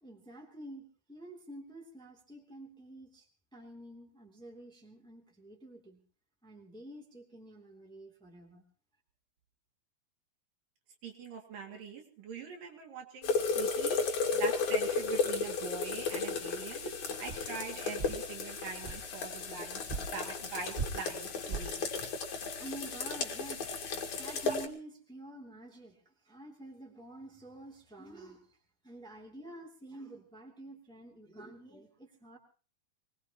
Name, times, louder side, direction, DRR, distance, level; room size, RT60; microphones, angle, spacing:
voice 1, 0.0-6.0 6.4-8.6 22.6-23.8 24.1-28.6 28.8-32.4, right 1 dB, ahead, 1 dB, 2.3 m, -49 dB
voice 2, 11.0-14.0 14.3-21.8 24.5-24.6, right 5 dB, 70° right, 2 dB, 4.0 m, -43 dB
sound 1, 13.2-24.7, left 4 dB, 60° left, 3.3 m, -34 dB
sound 2, 17.3-17.4 18.0-18.2 18.8-19.0 19.9-20.0 20.8-20.9 21.5-21.6, right 5 dB, 35° right, 1.1 m, -36 dB
23.0 x 20.5 x 3.0 m, 0.39 s
omnidirectional pair, 4.1 m